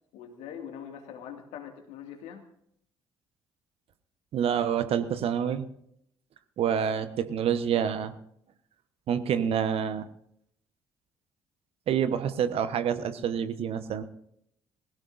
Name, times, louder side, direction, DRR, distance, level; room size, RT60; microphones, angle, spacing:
voice 1, 0.1-2.4, left 8 dB, 65° left, 5 dB, 2.3 m, -42 dB
voice 2, 4.3-5.7 6.6-8.1 9.1-10.1 11.9-14.0, right 8 dB, 50° right, 11 dB, 1.2 m, -27 dB
20.5 x 17.0 x 2.7 m, 0.71 s
figure-of-eight pair, 45°, 12 cm